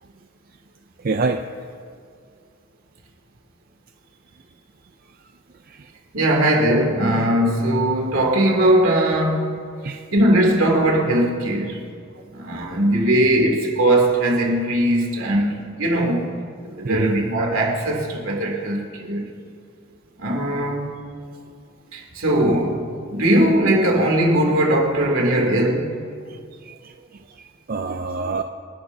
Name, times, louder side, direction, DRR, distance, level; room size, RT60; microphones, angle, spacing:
voice 1, 1.0-1.4 5.7-5.9 9.8-10.0 16.8-17.1 25.3-25.4 26.3-28.4, right 3 dB, 40° right, 6 dB, 0.4 m, -27 dB
voice 2, 6.1-9.7 10.1-11.9 12.3-16.2 16.7-19.3 20.2-20.9 21.9-25.9, right 1 dB, 70° right, -1 dB, 2.7 m, -19 dB
28.0 x 11.5 x 2.7 m, 2.2 s
head